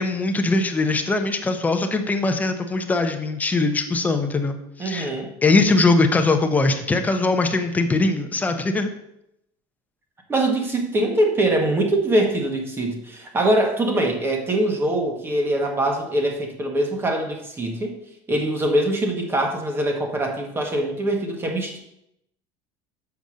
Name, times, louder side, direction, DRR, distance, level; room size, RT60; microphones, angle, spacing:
voice 1, 0.0-5.1 5.4-8.9, left 3 dB, 15° left, 6 dB, 0.9 m, -21 dB
voice 2, 4.8-5.3 10.3-17.9 18.3-21.8, right 1 dB, 20° right, 2 dB, 1.6 m, -23 dB
7.1 x 5.2 x 6.4 m, 0.80 s
cardioid pair, 140°, 12 cm